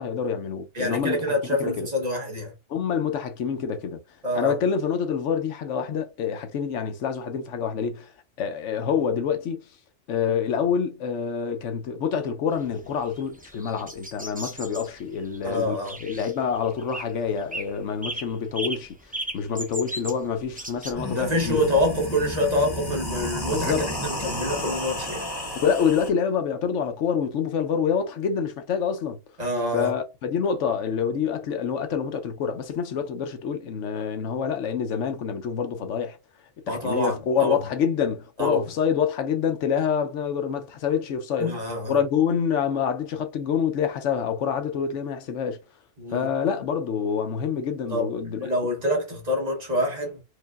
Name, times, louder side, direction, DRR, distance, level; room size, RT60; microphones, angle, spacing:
voice 1, 0.0-1.2 1.6-1.9 2.7-4.0 4.3-8.1 8.4-9.6 10.1-19.0 19.3-21.6 23.4-23.9 25.5-29.2 29.7-36.2 36.7-41.5 41.9-45.6 46.1-48.5, left 7 dB, 80° left, 1.0 m, -26 dB
voice 2, 0.7-2.5 4.2-4.5 15.4-16.0 21.1-25.3 29.4-29.9 36.7-37.6 38.4-38.6 41.4-42.0 46.0-46.3 47.9-50.2, left 1 dB, 35° right, 1.2 m, -26 dB
sound 1, 12.6-20.9, right 1 dB, 10° right, 0.4 m, -36 dB
sound 2, 20.4-20.5 20.8-26.1, left 1 dB, 20° left, 1.0 m, -32 dB
4.7 x 2.7 x 2.3 m
omnidirectional pair, 1.2 m